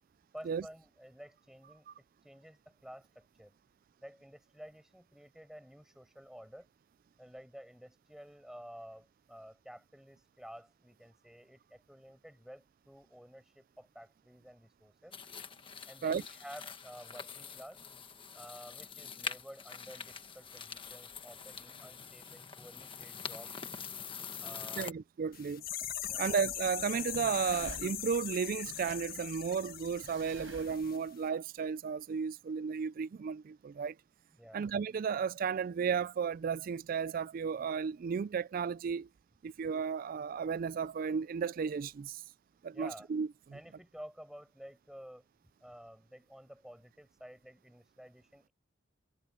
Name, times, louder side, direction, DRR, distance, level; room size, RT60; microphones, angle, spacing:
voice 1, 0.3-1.9 2.2-3.5 4.0-6.7 7.2-15.2 15.9-17.8 18.3-23.5 24.4-24.9 26.1-26.3 34.4-34.7 42.7-43.1 43.5-45.3 45.6-48.5, equal, 5° right, 5.8 m, -52 dB
sound 1, 15.1-24.9, left 6 dB, 25° left, 1.4 m, -45 dB
voice 2, 24.8-25.6 26.2-34.0 34.5-39.1 39.4-42.2 42.6-43.6, right 6 dB, 45° right, 0.3 m, -34 dB
sound 2, 25.3-31.0 31.2-31.3, left 11 dB, 50° left, 1.6 m, -40 dB
sound 3, 25.8-30.9, right 2 dB, 85° right, 6.0 m, -51 dB
head